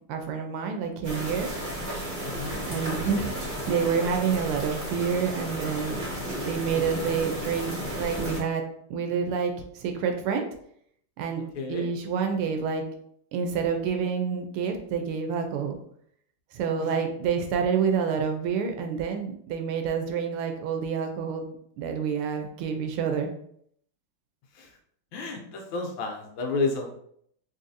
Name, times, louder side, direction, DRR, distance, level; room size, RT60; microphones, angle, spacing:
voice 1, 0.1-1.5 2.7-3.3 3.7-6.0 6.4-7.7 8.0-8.6 8.9-10.5 11.2-11.4 11.7-12.8 13.3-15.8 16.5-21.4 21.8-23.3, right 6 dB, 80° right, 5 dB, 1.5 m, -28 dB
sound 1, 1.0-8.4, right 1 dB, 30° right, 1.1 m, -33 dB
voice 2, 2.2-2.6 11.5-11.9 16.8-17.0 24.5-24.7 25.1-26.9, left 3 dB, 75° left, 3 dB, 1.4 m, -31 dB
4.0 x 3.0 x 2.6 m, 0.67 s
omnidirectional pair, 2.4 m